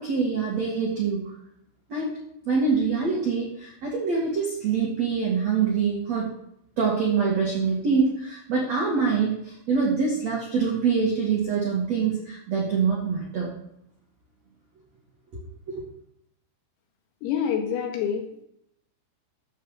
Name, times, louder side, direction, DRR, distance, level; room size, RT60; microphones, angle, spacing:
voice 1, 0.0-1.3 1.9-2.2 2.5-6.3 6.8-13.5 15.7-15.8, right 5 dB, 55° right, -3 dB, 2.0 m, -25 dB
voice 2, 17.2-18.5, left 8 dB, 85° left, 1 dB, 4.4 m, -27 dB
11.5 x 5.4 x 7.1 m, 0.75 s
omnidirectional pair, 6.0 m